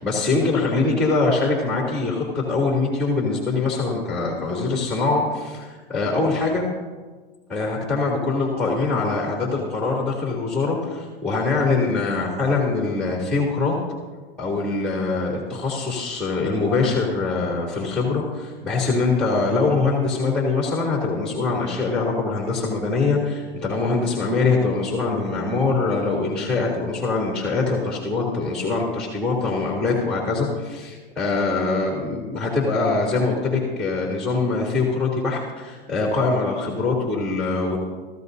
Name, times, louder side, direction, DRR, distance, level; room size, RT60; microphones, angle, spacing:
voice 1, 0.0-6.6 7.5-13.7 14.4-37.8, left 3 dB, ahead, -2 dB, 3.1 m, -23 dB
24.0 x 14.0 x 2.8 m, 1.3 s
hypercardioid pair, 120°, 31 cm